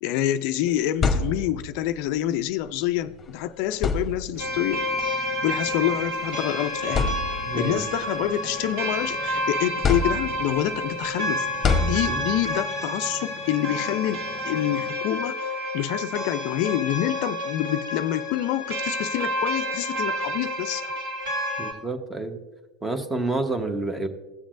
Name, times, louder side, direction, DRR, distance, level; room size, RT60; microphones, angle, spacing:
voice 1, 0.0-7.2 7.5-11.5 11.8-15.5 15.7-20.9, left 12 dB, 60° left, 0.4 m, -27 dB
sound 1, 0.7-1.8 3.1-3.2 3.7-4.6 5.7-5.8 6.4-6.5 6.9-7.7 8.2-9.3 9.8-10.6 11.6-12.5, left 4 dB, 20° left, 1.1 m, -26 dB
sound 2, 4.3-14.9, right 3 dB, 30° right, 1.5 m, -46 dB
sound 3, 4.4-21.7, equal, 60° right, 2.6 m, -30 dB
voice 2, 7.5-7.8 12.1-12.2 21.6-22.4 22.8-24.1, right 2 dB, 10° right, 1.0 m, -29 dB
16.0 x 7.1 x 2.5 m
hypercardioid pair, 95°, 0 cm